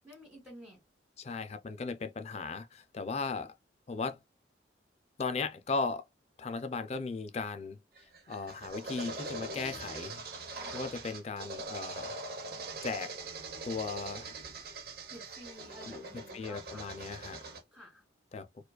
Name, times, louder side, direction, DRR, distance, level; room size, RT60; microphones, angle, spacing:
voice 1, 0.0-0.8 10.6-10.9 15.1-16.9 17.7-18.0, equal, 10° right, 2.2 m, -52 dB
voice 2, 1.2-3.5 3.9-4.2 5.2-6.0 6.4-7.8 8.3-10.2 10.7-12.2 12.8-13.1 13.6-14.3 15.8-17.4 18.3-18.5, left 4 dB, 35° left, 0.3 m, -37 dB
sound 1, 8.0-17.6, right 3 dB, 50° right, 0.8 m, -42 dB
4.5 x 2.3 x 2.2 m
head